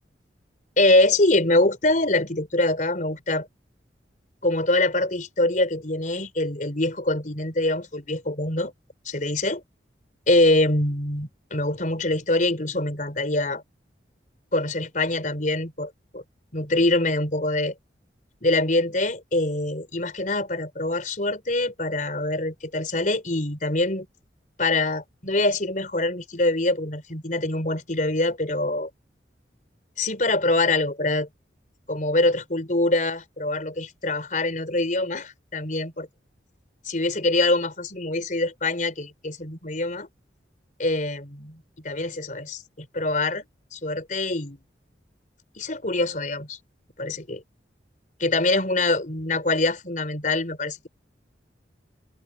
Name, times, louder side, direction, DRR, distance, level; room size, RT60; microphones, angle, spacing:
voice 1, 0.8-3.5 4.4-8.7 9.0-9.6 10.3-13.6 14.5-16.2 16.5-17.7 18.4-24.1 24.6-28.9 30.0-31.3 31.9-36.1 36.8-40.1 40.8-43.4 43.7-44.6 45.6-46.6 47.0-47.4 48.2-50.9, left 2 dB, 45° left, 4.5 m, -24 dB
open air
head